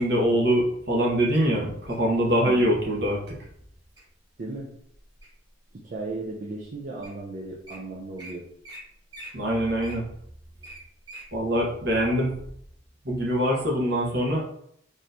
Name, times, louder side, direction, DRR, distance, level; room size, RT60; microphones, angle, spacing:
voice 1, 0.0-3.4 9.3-10.0 11.3-12.3 13.0-14.4, equal, 60° right, -3 dB, 1.2 m, -23 dB
Wild animals, 1.3-2.1 2.8-3.1 3.6-4.0 4.5-5.5 6.1-6.2 6.8-6.9 7.0-7.2 7.5-7.8 8.2-8.3 8.6-8.8 9.1-11.3 11.7-11.8, right 1 dB, 25° right, 1.5 m, -44 dB
voice 2, 2.4-2.8 4.4-4.7 5.7-8.5, right 2 dB, 45° right, -2 dB, 0.5 m, -36 dB
4.2 x 3.1 x 2.6 m, 0.69 s
head